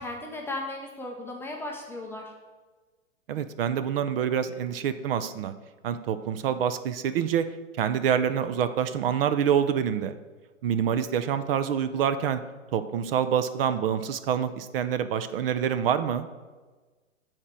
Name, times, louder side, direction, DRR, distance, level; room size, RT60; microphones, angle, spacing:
voice 1, 0.0-2.3, left 2 dB, 5° left, -1 dB, 0.5 m, -36 dB
voice 2, 3.3-5.5 5.8-7.5 7.8-10.1 10.6-12.4 12.7-16.3, right 8 dB, 45° right, 11 dB, 0.6 m, -26 dB
8.6 x 4.4 x 6.1 m, 1.3 s
hypercardioid pair, 130°, 39 cm